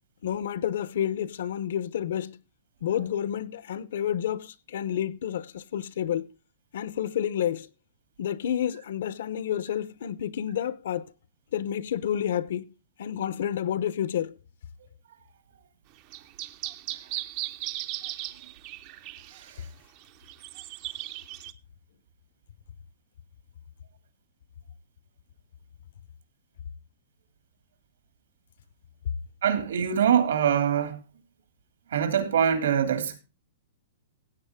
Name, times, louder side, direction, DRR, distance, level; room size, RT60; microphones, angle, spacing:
voice 1, 0.2-2.4 2.8-6.3 6.7-7.7 8.2-11.1 11.5-12.7 13.0-14.4, left 10 dB, 55° left, 0.7 m, -30 dB
sound 1, 16.1-19.5 20.0-20.1 20.3-21.5, right 15 dB, 25° right, 0.6 m, -37 dB
voice 2, 29.4-31.0 31.9-33.2, right 8 dB, 75° right, 2.5 m, -24 dB
15.5 x 8.1 x 3.6 m
hypercardioid pair, 175°, 0 cm